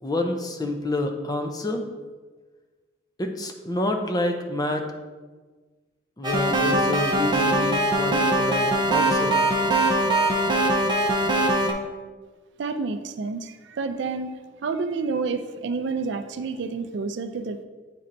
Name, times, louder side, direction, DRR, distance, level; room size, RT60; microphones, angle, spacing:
voice 1, 0.0-1.8 3.2-4.8 6.2-9.4, left 1 dB, 20° left, 4 dB, 0.5 m, -28 dB
sound 1, 6.2-11.7, right 1 dB, 25° right, 0.6 m, -22 dB
voice 2, 12.6-14.3 14.6-17.6, right 4 dB, 65° right, 9 dB, 0.4 m, -29 dB
8.3 x 4.3 x 2.6 m, 1.4 s
head